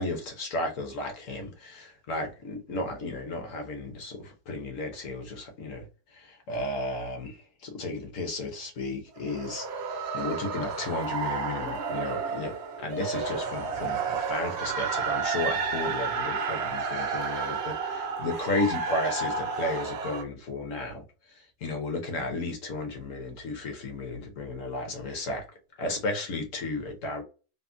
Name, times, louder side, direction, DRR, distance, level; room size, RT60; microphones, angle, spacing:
voice 1, 0.0-21.0 21.4-25.4 25.8-27.2, left 2 dB, 60° left, 1.0 m, -34 dB
sound 1, 9.2-20.2, right 5 dB, 65° right, 0.7 m, -31 dB
3.5 x 2.0 x 2.5 m
omnidirectional pair, 1.7 m